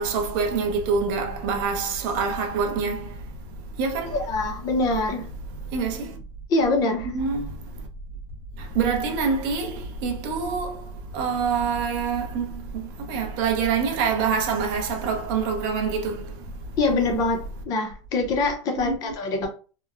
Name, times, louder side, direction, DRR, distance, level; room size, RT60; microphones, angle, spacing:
voice 1, 0.0-3.2 3.8-4.2 5.7-6.2 7.0-7.5 8.6-16.4 18.8-19.0, right 5 dB, 40° right, 0.5 m, -26 dB
voice 2, 4.1-5.3 6.5-7.1 16.8-19.5, left 2 dB, 25° left, 0.5 m, -24 dB
2.9 x 2.0 x 2.3 m
supercardioid pair, 165°, 16 cm